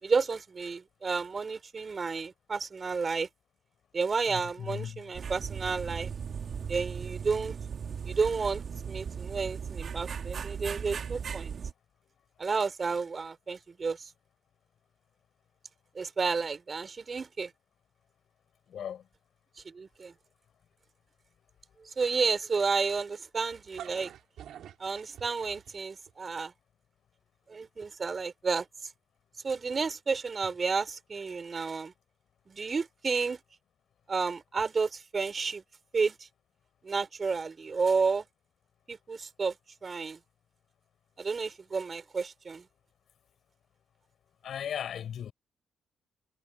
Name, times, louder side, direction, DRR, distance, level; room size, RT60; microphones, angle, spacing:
voice 1, 0.0-3.3 3.9-6.1 6.7-7.6 8.1-11.5 12.4-14.1 15.9-17.5 19.6-20.1 21.8-24.1 24.8-26.5 27.5-28.7 29.4-31.9 32.5-33.4 34.1-35.6 35.9-36.2 36.8-38.2 38.9-39.5 39.8-40.2 41.2-42.6, right 4 dB, 35° right, 5.5 m, -31 dB
voice 2, 4.3-5.0 18.7-19.1 44.4-45.3, left 9 dB, 65° left, 5.8 m, -37 dB
sound 1, 5.1-11.7, right 6 dB, 50° right, 3.5 m, -37 dB
sound 2, 23.5-26.1, right 10 dB, 70° right, 4.2 m, -47 dB
cardioid pair, 90°, 0 cm